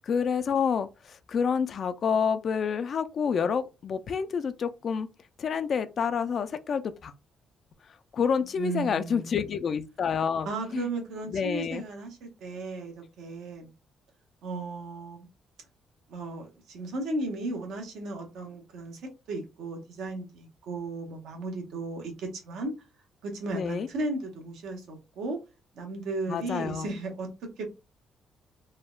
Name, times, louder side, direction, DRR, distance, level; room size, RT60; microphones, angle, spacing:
voice 1, 0.0-5.1 5.4-7.1 8.1-10.9 11.3-11.8 23.5-23.9 26.3-26.9, left 6 dB, 55° left, 0.3 m, -28 dB
voice 2, 8.6-9.4 10.4-13.7 14.4-15.3 16.1-19.0 19.3-22.7 23.2-25.4 25.7-27.3 27.6-27.7, right 2 dB, 85° right, 1.0 m, -35 dB
3.4 x 2.1 x 2.3 m
cardioid pair, 90°, 0 cm